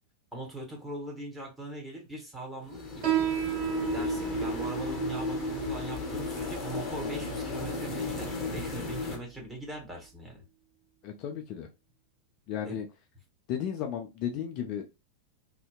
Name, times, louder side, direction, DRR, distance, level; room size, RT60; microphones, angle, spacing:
voice 1, 0.3-3.3 3.9-10.4 12.6-12.8, right 1 dB, 10° right, 1.0 m, -41 dB
sound 1, 2.7-9.2, left 4 dB, 20° left, 0.8 m, -34 dB
Piano, 3.0-10.1, right 14 dB, 45° right, 0.6 m, -35 dB
voice 2, 11.0-11.7 12.5-12.9 13.5-14.8, left 9 dB, 40° left, 0.3 m, -34 dB
2.6 x 2.1 x 2.2 m
figure-of-eight pair, 90°, 0 cm